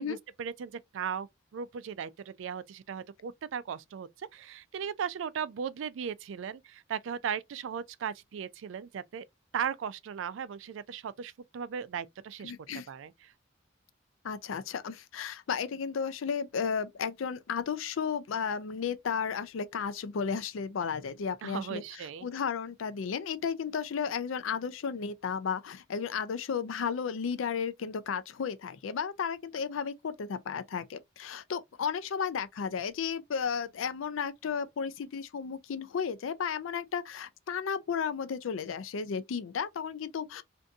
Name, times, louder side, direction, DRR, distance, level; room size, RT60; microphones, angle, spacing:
voice 1, 0.0-9.3 9.5-12.5 12.9-13.3 21.4-22.3, right 7 dB, 75° right, 0.3 m, -37 dB
voice 2, 12.4-12.9 14.2-21.8 22.2-40.4, left 6 dB, 85° left, 0.4 m, -33 dB
2.6 x 2.6 x 3.4 m
head